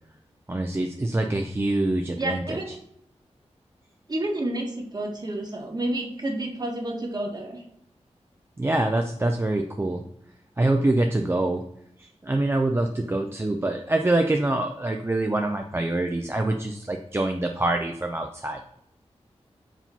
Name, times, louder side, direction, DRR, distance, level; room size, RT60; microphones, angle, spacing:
voice 1, 0.5-2.6 8.6-10.0 10.6-11.6 12.0-18.7, right 2 dB, 20° right, 3 dB, 0.5 m, -25 dB
voice 2, 2.2-2.7 4.1-7.6, right 1 dB, 35° right, 1 dB, 1.5 m, -30 dB
4.9 x 3.7 x 5.5 m, 0.75 s
wide cardioid pair, 90°, 11 cm